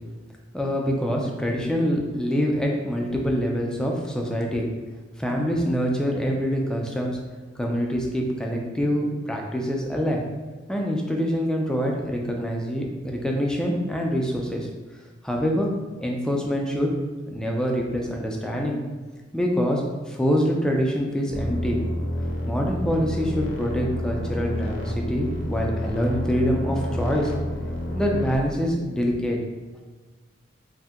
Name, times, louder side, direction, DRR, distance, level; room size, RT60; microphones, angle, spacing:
voice 1, 0.5-4.7 5.2-7.2 7.6-10.2 10.7-14.7 15.2-15.7 16.0-16.9 17.3-18.8 19.3-21.8 22.5-27.3 27.9-29.4, equal, 5° left, 0 dB, 0.3 m, -25 dB
sound 1, 21.3-28.4, left 1 dB, 80° left, 0.5 m, -29 dB
2.6 x 2.1 x 3.5 m, 1.3 s
head